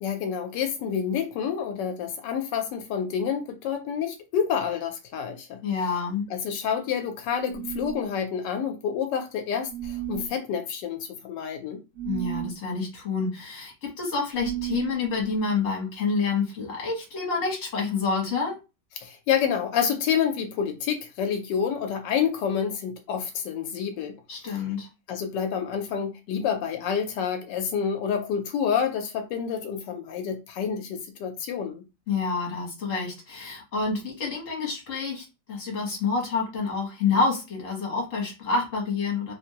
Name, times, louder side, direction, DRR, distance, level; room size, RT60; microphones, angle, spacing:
voice 1, 0.0-5.6 6.3-11.8 19.0-24.2 24.5-24.6 25.1-31.8, left 7 dB, 85° left, 1.2 m, -28 dB
voice 2, 5.6-6.2 12.0-18.6 24.3-24.9 32.1-39.3, left 4 dB, 50° left, 1.6 m, -28 dB
sound 1, 7.5-8.1 9.7-10.3 12.0-12.6 14.4-15.0, right 13 dB, 60° right, 1.1 m, -33 dB
3.4 x 2.5 x 2.8 m
omnidirectional pair, 1.9 m